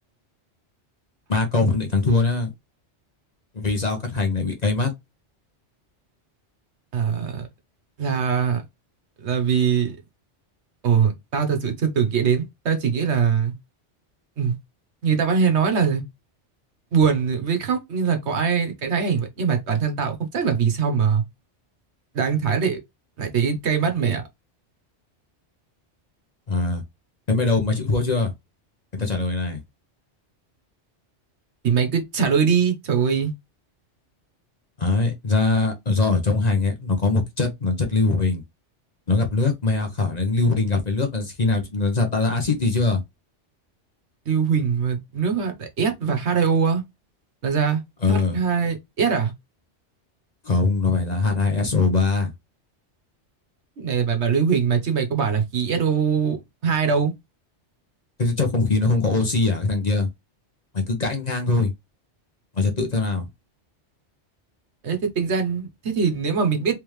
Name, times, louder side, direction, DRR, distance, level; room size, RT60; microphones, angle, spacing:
voice 1, 1.3-2.5 3.5-4.9 26.5-26.8 27.3-28.3 28.9-29.6 34.8-38.4 39.1-43.0 48.0-48.4 50.4-52.3 58.2-60.1 60.7-61.7 62.5-63.3, left 3 dB, 40° left, 0.9 m, -22 dB
voice 2, 6.9-7.5 8.0-8.6 9.2-10.0 10.8-13.5 14.4-14.5 15.0-16.0 16.9-21.2 22.1-22.8 23.2-24.2 31.6-33.3 44.3-46.8 47.4-47.8 48.1-49.3 53.8-57.1 64.8-66.7, right 6 dB, 70° right, 1.2 m, -22 dB
3.5 x 3.4 x 3.1 m
omnidirectional pair, 1.2 m